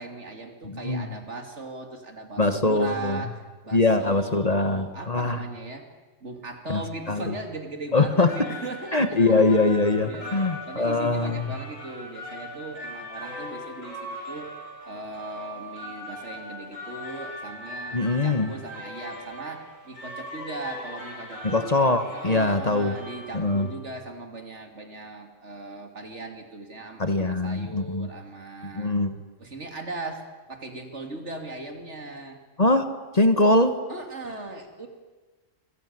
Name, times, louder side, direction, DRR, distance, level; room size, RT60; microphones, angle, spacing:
voice 1, 0.0-5.9 6.2-9.2 9.7-14.5 14.8-21.7 22.1-28.9 29.4-32.4 33.9-34.9, right 2 dB, 65° right, 5 dB, 3.0 m, -38 dB
voice 2, 0.6-1.1 2.4-3.2 3.7-5.4 6.7-6.8 7.1-7.3 7.9-8.4 8.9-11.5 17.9-18.5 21.4-23.0 23.3-23.7 27.0-28.1 28.7-29.1 32.6-33.8, left 2 dB, 30° left, 9 dB, 1.3 m, -22 dB
sound 1, 8.0-23.9, left 1 dB, 90° left, 6.2 m, -40 dB
27.5 x 21.5 x 9.5 m, 1.3 s
omnidirectional pair, 1.3 m